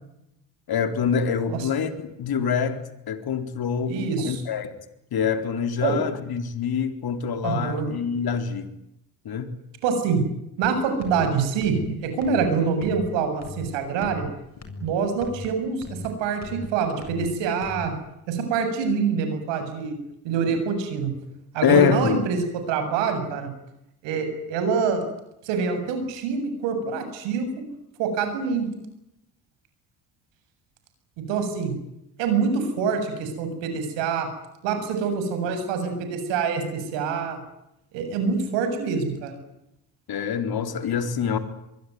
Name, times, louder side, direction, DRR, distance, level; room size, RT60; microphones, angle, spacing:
voice 1, 0.7-2.8 3.1-3.9 4.2-4.7 5.1-8.7 9.2-9.5 21.6-22.2 40.1-41.4, left 7 dB, 55° left, 8 dB, 4.0 m, -25 dB
voice 2, 3.9-4.4 5.8-6.0 7.4-7.9 9.8-10.2 10.6-14.3 14.8-18.0 18.3-20.0 20.2-21.1 21.5-23.5 24.0-25.0 25.4-27.6 28.0-28.7 31.3-31.7 32.2-34.3 34.6-37.4 37.9-39.4, right 5 dB, 80° right, 8 dB, 7.5 m, -25 dB
sound 1, 10.6-10.7 11.0-11.3 11.6-11.9 12.2-12.5 12.8-13.1 13.4-13.7 14.0-14.3 14.6-14.9 15.2-15.5 15.8-16.1 16.4-16.7 17.0-17.3 17.6-17.9, left 3 dB, 40° left, 7.6 m, -38 dB
24.0 x 23.5 x 9.6 m, 0.85 s
supercardioid pair, 60°, 43 cm